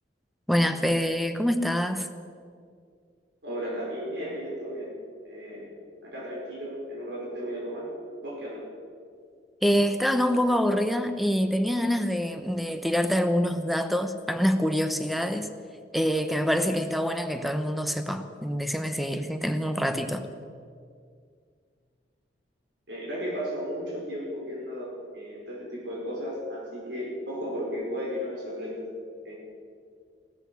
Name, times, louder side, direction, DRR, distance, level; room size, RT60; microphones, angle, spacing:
voice 1, 0.5-2.1 9.6-15.5 15.9-20.3, equal, ahead, 8 dB, 0.9 m, -25 dB
voice 2, 3.4-5.0 5.3-5.7 6.0-7.9 8.2-8.6 22.9-28.8 29.2-29.3, equal, 75° right, -4 dB, 5.4 m, -34 dB
16.5 x 13.5 x 6.4 m, 2.2 s
head